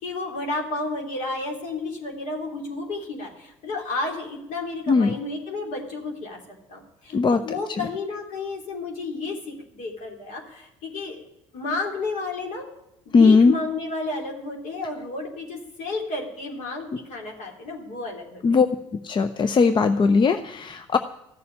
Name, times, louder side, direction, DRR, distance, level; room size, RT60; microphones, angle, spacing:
voice 1, 0.0-6.4 6.7-11.2 11.5-12.6 13.0-18.6, left 3 dB, 55° left, 1 dB, 3.4 m, -32 dB
voice 2, 7.1-7.4 7.7-7.9 13.1-13.5 18.4-18.7 19.0-21.0, left 4 dB, 30° left, 9 dB, 0.7 m, -18 dB
14.5 x 6.9 x 10.0 m, 0.88 s
figure-of-eight pair, 55°, 15 cm